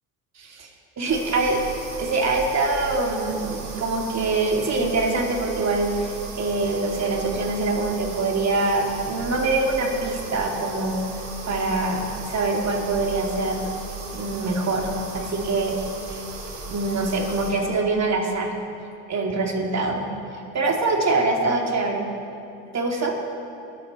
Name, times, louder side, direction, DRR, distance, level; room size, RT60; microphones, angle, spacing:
voice 1, 0.4-0.7 1.0-1.6 2.0-11.0 11.4-13.7 14.1-14.9 15.1-15.8 16.1-16.2 16.7-18.5 19.1-20.0 20.5-22.1 22.7-23.1, right 3 dB, 40° right, 1 dB, 2.5 m, -24 dB
sound 1, 1.1-17.5, right 4 dB, 75° right, 2.5 m, -36 dB
22.0 x 8.5 x 4.1 m, 2.6 s
hypercardioid pair, 65°, 39 cm